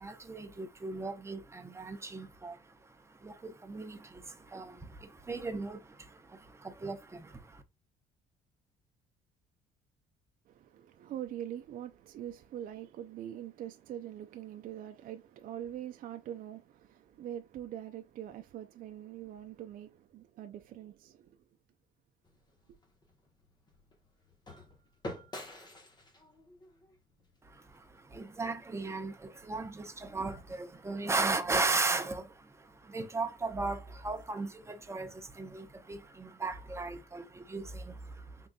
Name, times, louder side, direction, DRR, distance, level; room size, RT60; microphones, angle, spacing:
voice 1, 0.0-7.6 27.4-38.5, right 3 dB, 15° right, 0.7 m, -37 dB
voice 2, 10.5-21.4 22.7-22.8, right 11 dB, 55° right, 0.5 m, -43 dB
sound 1, 22.2-28.4, left 1 dB, 25° left, 1.0 m, -49 dB
3.8 x 3.7 x 2.3 m
cardioid pair, 110°, 17 cm